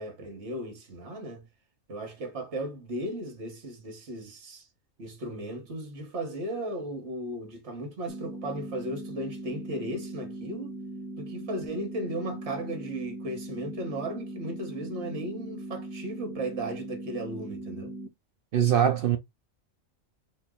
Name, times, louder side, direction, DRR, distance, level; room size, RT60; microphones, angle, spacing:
voice 1, 0.0-1.5 1.9-4.7 5.0-10.8 11.2-17.9, right 1 dB, 55° right, 1.7 m, -36 dB
sound 1, 8.1-18.1, right 2 dB, 10° left, 0.8 m, -39 dB
voice 2, 18.5-19.2, right 9 dB, 70° right, 0.5 m, -22 dB
4.5 x 2.5 x 3.7 m
omnidirectional pair, 1.4 m